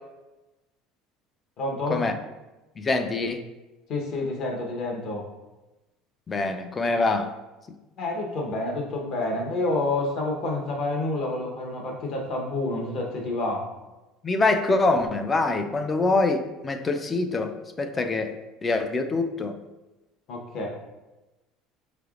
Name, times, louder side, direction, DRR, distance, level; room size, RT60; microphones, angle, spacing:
voice 1, 1.6-2.1 3.9-5.2 8.0-13.6 20.3-20.7, left 2 dB, 45° left, 0 dB, 0.9 m, -28 dB
voice 2, 2.8-3.4 6.3-7.3 14.2-18.4 18.6-19.6, left 3 dB, 20° left, 8 dB, 0.3 m, -24 dB
5.5 x 3.3 x 2.4 m, 1.1 s
cardioid pair, 145°, 0 cm